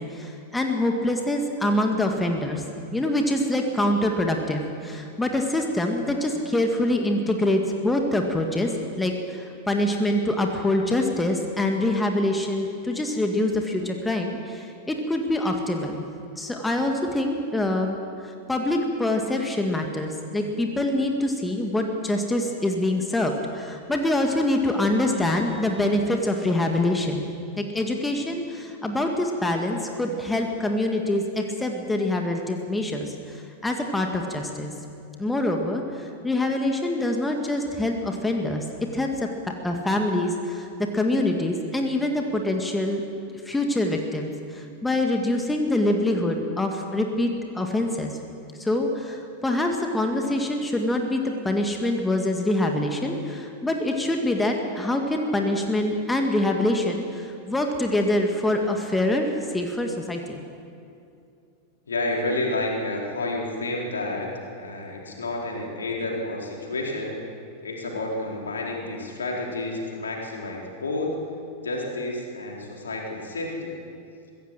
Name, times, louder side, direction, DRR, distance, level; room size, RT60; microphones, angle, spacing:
voice 1, 0.0-2.6 2.9-8.7 9.0-16.1 16.4-18.0 18.5-27.3 27.6-34.7 35.2-38.7 38.9-40.7 40.9-43.0 43.5-48.1 48.6-60.4, left 1 dB, 10° left, 3 dB, 2.0 m, -25 dB
voice 2, 61.9-67.2 67.6-71.2 71.6-73.7, left 2 dB, 70° left, -1 dB, 4.2 m, -30 dB
23.5 x 16.0 x 7.7 m, 2.5 s
figure-of-eight pair, 90°, 0 cm